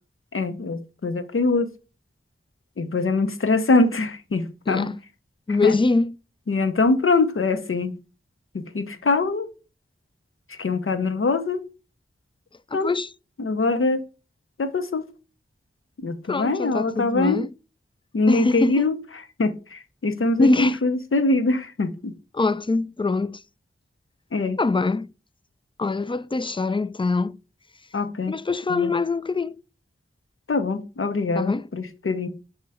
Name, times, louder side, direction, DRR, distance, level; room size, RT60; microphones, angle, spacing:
voice 1, 0.3-1.7 2.8-4.9 5.5-5.8 6.5-8.0 8.5-9.5 10.5-11.6 12.7-12.9 13.4-14.0 14.6-15.1 16.0-17.4 18.1-19.0 19.4-22.1 24.3-24.6 27.9-28.4 28.7-28.9 30.5-32.3, left 3 dB, 80° left, 0.8 m, -23 dB
voice 2, 5.5-6.1 12.7-13.1 16.3-17.5 18.3-18.9 20.4-20.8 22.3-23.4 24.6-25.1 25.8-27.4 28.3-29.6 31.3-31.6, left 3 dB, 25° left, 0.4 m, -23 dB
6.7 x 3.0 x 4.8 m
wide cardioid pair, 40°, 21 cm